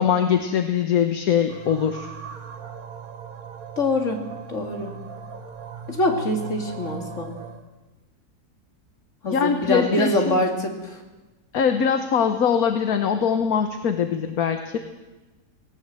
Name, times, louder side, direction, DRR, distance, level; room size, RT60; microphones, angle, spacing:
voice 1, 0.0-2.1 9.3-10.4 11.5-14.8, left 7 dB, 70° left, 7 dB, 1.5 m, -22 dB
sound 1, 1.5-7.7, right 6 dB, 65° right, 2.0 m, -38 dB
voice 2, 3.8-4.2 4.5-4.9 5.9-7.4 9.2-11.0, left 2 dB, 50° left, 2 dB, 2.8 m, -24 dB
18.5 x 18.5 x 7.7 m, 1.2 s
omnidirectional pair, 1.7 m